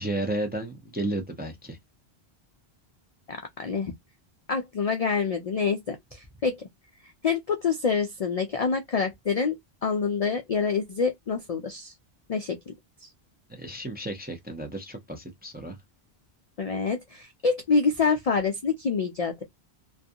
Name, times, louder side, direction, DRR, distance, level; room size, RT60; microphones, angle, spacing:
voice 1, 0.0-1.8 13.5-15.8, right 1 dB, 15° right, 0.4 m, -33 dB
voice 2, 3.3-3.9 4.5-6.6 7.2-11.9 12.3-12.7 13.0-13.1 16.6-19.4, left 5 dB, 55° left, 0.4 m, -27 dB
2.4 x 2.3 x 2.6 m
omnidirectional pair, 1.1 m